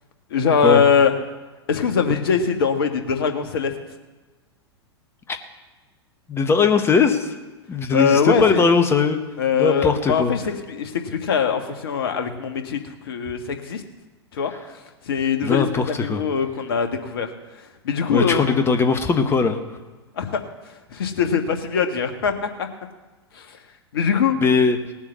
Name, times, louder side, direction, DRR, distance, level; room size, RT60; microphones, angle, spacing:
voice 1, 0.3-1.2 1.7-3.7 7.9-8.6 9.4-10.4 10.7-12.8 13.0-13.8 14.3-14.5 15.1-17.3 17.8-18.5 20.2-20.5 20.9-22.7 23.3-23.5 23.9-24.4, left 6 dB, 60° left, 6 dB, 1.7 m, -22 dB
voice 2, 6.3-7.3 7.7-9.2 9.6-10.3 15.4-16.2 18.1-19.6 24.3-24.8, left 5 dB, 15° left, 7 dB, 1.4 m, -19 dB
18.5 x 7.3 x 7.0 m, 1.2 s
figure-of-eight pair, 100°, 14 cm